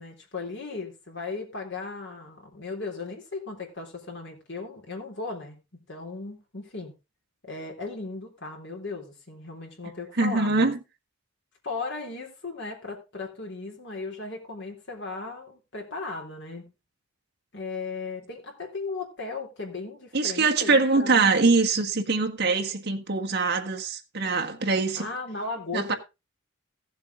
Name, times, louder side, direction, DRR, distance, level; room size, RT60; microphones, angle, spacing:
voice 1, 0.0-5.6 5.9-6.9 7.4-10.7 11.6-16.7 17.5-21.2 25.0-26.0, left 3 dB, 60° left, 3.7 m, -36 dB
voice 2, 10.2-10.8 20.1-25.1 25.7-25.9, right 4 dB, 55° right, 1.5 m, -23 dB
15.5 x 7.4 x 3.8 m
head